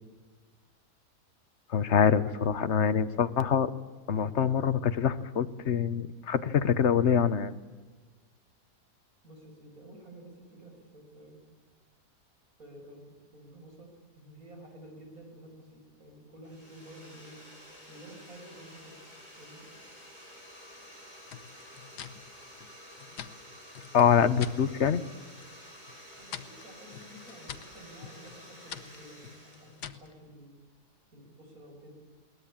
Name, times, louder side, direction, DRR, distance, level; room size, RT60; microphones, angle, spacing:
voice 1, 1.7-3.7 4.1-7.5 23.9-25.0, left 7 dB, 50° left, 13 dB, 1.1 m, -25 dB
voice 2, 9.2-11.4 12.6-17.4 17.9-19.0 19.4-19.7 26.2-30.5 31.1-31.9, right 1 dB, 55° right, 1 dB, 6.9 m, -51 dB
sound 1, 16.4-29.9, equal, 25° right, 6.5 m, -51 dB
sound 2, 21.3-24.6 25.0-25.6 25.9-30.1, left 8 dB, 75° left, 1.6 m, -46 dB
22.0 x 19.0 x 8.7 m, 1.4 s
omnidirectional pair, 1.8 m